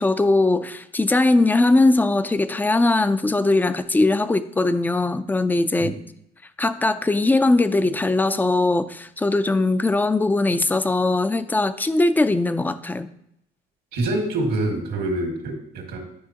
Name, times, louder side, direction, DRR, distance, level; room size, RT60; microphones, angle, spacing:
voice 1, 0.0-6.0 6.6-13.1, left 2 dB, 10° left, 12 dB, 0.4 m, -20 dB
voice 2, 13.9-16.0, right 2 dB, 80° right, 2 dB, 1.9 m, -25 dB
10.0 x 5.5 x 2.9 m, 0.76 s
cardioid pair, 110°, 17 cm